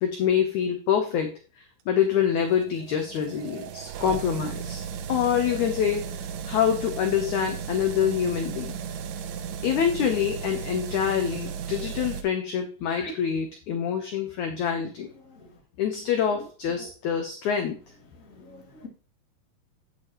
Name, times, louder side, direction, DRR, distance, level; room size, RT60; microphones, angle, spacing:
voice 1, 0.0-1.4 1.9-4.8 5.1-8.7 9.6-15.1 15.8-17.8, left 8 dB, 75° left, 5 dB, 1.8 m, -26 dB
sound 1, 1.9-12.2, right 7 dB, 85° right, 2.9 m, -35 dB
voice 2, 18.3-18.9, left 4 dB, 30° left, 0 dB, 1.7 m, -43 dB
8.6 x 8.4 x 3.0 m, 0.37 s
omnidirectional pair, 4.5 m